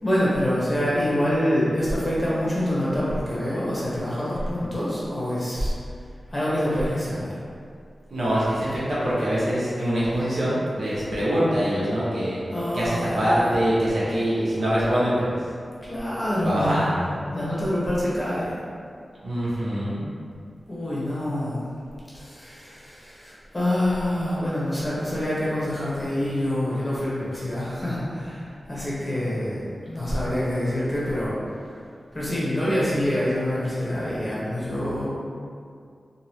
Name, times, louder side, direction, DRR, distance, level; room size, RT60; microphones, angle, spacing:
voice 1, 0.0-5.7 6.3-7.4 12.5-13.5 15.8-16.9 17.3-18.5 20.7-21.6 22.1-31.3 32.1-35.1, left 1 dB, 20° left, -8 dB, 1.0 m, -26 dB
voice 2, 8.1-12.4 12.7-15.3 16.4-17.2 19.2-20.0, equal, 80° right, -9 dB, 1.0 m, -24 dB
2.9 x 2.7 x 3.0 m, 2.3 s
wide cardioid pair, 70°, 0 cm